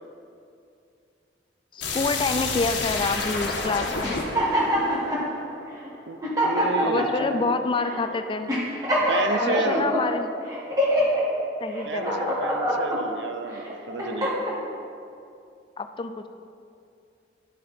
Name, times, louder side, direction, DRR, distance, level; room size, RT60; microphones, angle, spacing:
voice 1, 1.7-4.2 6.8-8.5 9.4-10.3 11.6-12.3 15.8-16.3, left 3 dB, 25° left, 8 dB, 0.4 m, -27 dB
sound 1, 1.8-6.5, left 3 dB, 70° left, 1.3 m, -31 dB
sound 2, 4.0-5.2 5.9-6.0 6.2-7.3 7.8-8.0 8.5-10.0 10.5-11.2 11.7-13.0 13.6-14.6, equal, 20° right, 1.7 m, -24 dB
voice 2, 6.1-7.6 9.0-10.0 11.8-14.4, right 3 dB, 65° right, 9 dB, 0.6 m, -32 dB
11.5 x 6.4 x 4.4 m, 2.5 s
head